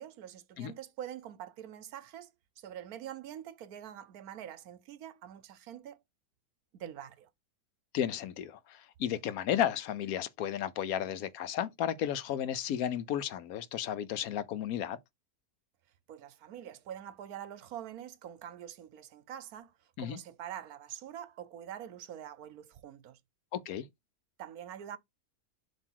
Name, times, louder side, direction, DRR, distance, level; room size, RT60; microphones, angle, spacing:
voice 1, 0.0-2.3 2.6-6.0 6.7-7.3 16.1-19.7 20.0-23.2 24.4-25.0, right 10 dB, 75° right, 1.2 m, -45 dB
voice 2, 7.9-15.0 20.0-20.2 23.5-23.9, left 10 dB, 75° left, 1.1 m, -33 dB
7.3 x 2.9 x 4.5 m
omnidirectional pair, 1.6 m